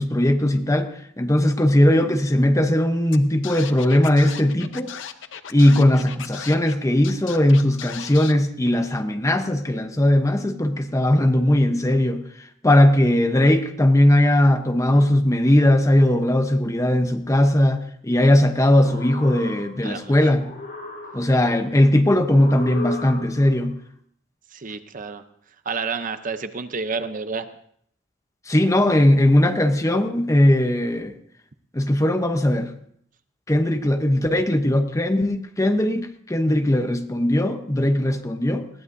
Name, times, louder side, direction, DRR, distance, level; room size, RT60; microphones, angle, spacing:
voice 1, 0.0-4.9 5.5-12.3 12.6-20.6 21.1-23.8 28.5-31.1 31.7-32.7 33.5-38.7, left 1 dB, 15° left, 7 dB, 0.8 m, -19 dB
Scratching (performance technique), 3.1-3.2 3.4-6.7 7.0-8.3, left 8 dB, 70° left, 0.8 m, -36 dB
sound 1, 18.6-20.0 20.3-21.6 22.3-23.6, left 2 dB, 50° left, 6.2 m, -36 dB
voice 2, 19.8-20.2 24.5-25.2 25.7-27.5, right 4 dB, 45° right, 10 dB, 0.7 m, -29 dB
20.5 x 15.0 x 2.7 m, 0.66 s
head